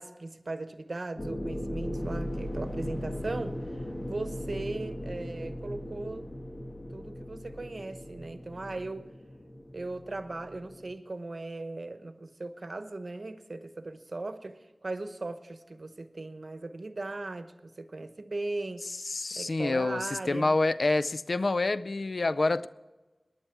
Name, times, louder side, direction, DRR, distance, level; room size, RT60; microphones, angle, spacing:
voice 1, 0.0-3.5 4.1-6.3 6.9-9.1 9.7-18.8 19.3-20.6, right 2 dB, 65° right, 1.0 m, -38 dB
sound 1, 1.2-10.9, equal, 35° left, 1.8 m, -38 dB
voice 2, 19.0-22.7, left 2 dB, 80° left, 0.4 m, -27 dB
19.0 x 10.5 x 4.6 m
wide cardioid pair, 45°, 0 cm